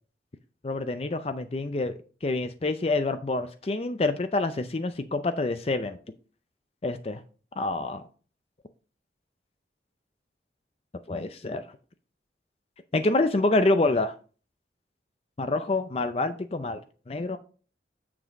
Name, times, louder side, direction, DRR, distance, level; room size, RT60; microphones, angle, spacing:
voice 1, 0.6-1.9 2.2-6.0 6.8-7.2 7.6-8.1 11.1-11.6 12.9-14.1 15.4-16.8 17.1-17.4, left 2 dB, 35° left, 0.5 m, -27 dB
7.1 x 6.1 x 4.0 m
head